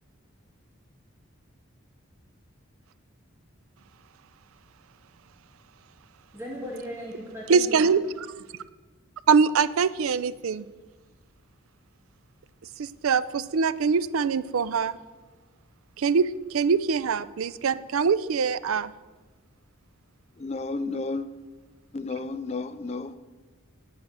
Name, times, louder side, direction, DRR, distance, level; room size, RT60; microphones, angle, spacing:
voice 1, 6.3-7.9, equal, 10° right, -3 dB, 1.7 m, -37 dB
voice 2, 7.5-8.3 9.3-10.7 12.8-15.0 16.0-18.9, right 5 dB, 80° right, 16 dB, 0.4 m, -23 dB
voice 3, 20.4-21.3 21.9-23.2, left 3 dB, 30° left, 11 dB, 0.4 m, -32 dB
9.3 x 8.2 x 6.4 m, 1.3 s
head